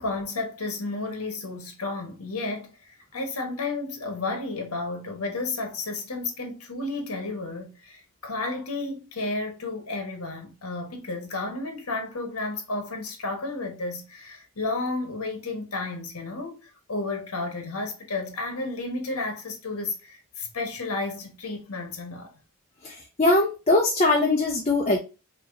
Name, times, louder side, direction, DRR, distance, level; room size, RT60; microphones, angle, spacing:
voice 1, 0.0-22.3, left 3 dB, 80° left, 1.4 m, -32 dB
voice 2, 22.8-25.0, left 2 dB, 30° left, 0.7 m, -21 dB
4.9 x 3.0 x 2.6 m
head